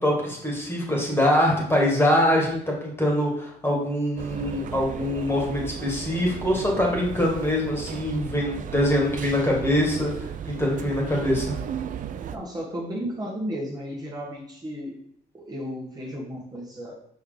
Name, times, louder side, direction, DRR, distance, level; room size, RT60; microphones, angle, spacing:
voice 1, 0.0-11.6, left 1 dB, 15° left, -2 dB, 2.0 m, -24 dB
sound 1, 4.2-12.4, right 8 dB, 50° right, 0.5 m, -35 dB
voice 2, 12.3-15.0 15.3-16.9, equal, 25° right, -4 dB, 1.5 m, -34 dB
5.6 x 5.4 x 3.9 m, 0.68 s
cardioid pair, 115°, 17 cm